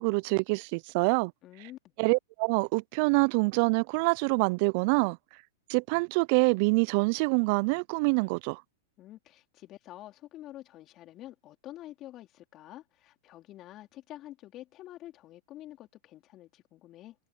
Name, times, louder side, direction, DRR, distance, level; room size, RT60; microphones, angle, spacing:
voice 1, 0.0-1.3 2.0-5.2 5.7-8.6, right 31 dB, 50° right, 0.3 m, -26 dB
voice 2, 1.4-1.9 9.0-17.2, left 14 dB, 35° left, 3.6 m, -48 dB
hypercardioid pair, 120°, 0 cm